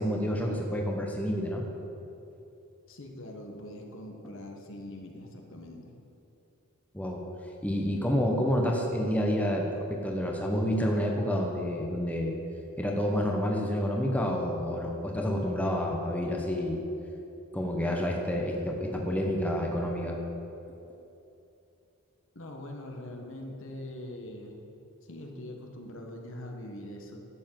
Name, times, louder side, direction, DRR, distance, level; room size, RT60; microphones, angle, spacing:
voice 1, 0.0-1.6 6.9-7.2 7.6-12.4 12.8-16.8 17.5-20.2, equal, 5° left, 0 dB, 1.1 m, -29 dB
voice 2, 2.9-6.0 22.3-24.6 25.0-27.2, left 1 dB, 65° left, 2 dB, 1.6 m, -42 dB
12.0 x 7.4 x 7.6 m, 2.8 s
head